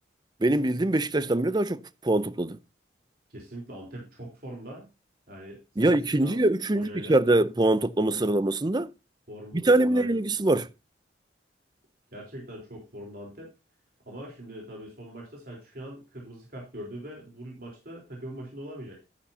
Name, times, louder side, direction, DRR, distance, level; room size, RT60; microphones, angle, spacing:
voice 1, 0.4-2.6 5.8-8.9 9.6-10.7, right 2 dB, 25° right, 0.6 m, -23 dB
voice 2, 3.3-4.9 5.3-6.5 6.7-7.2 9.3-10.2 12.1-13.5 14.1-19.0, equal, 55° right, 3.9 m, -42 dB
13.0 x 9.8 x 2.8 m
head